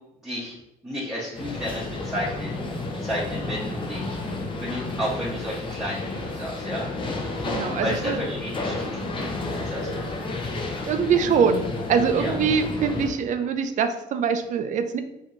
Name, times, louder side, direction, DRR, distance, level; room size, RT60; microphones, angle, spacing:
voice 1, 0.2-0.5 0.8-2.5 3.0-4.2 4.6-6.8 7.8-9.2 9.6-10.0 12.1-12.3, equal, 5° right, -8 dB, 0.8 m, -32 dB
sound 1, 1.3-13.1, left 2 dB, 30° left, 0.6 m, -31 dB
voice 2, 7.4-8.2 10.9-15.0, right 6 dB, 45° right, 9 dB, 0.4 m, -23 dB
3.6 x 2.7 x 2.5 m, 0.90 s
cardioid pair, 110°, 17 cm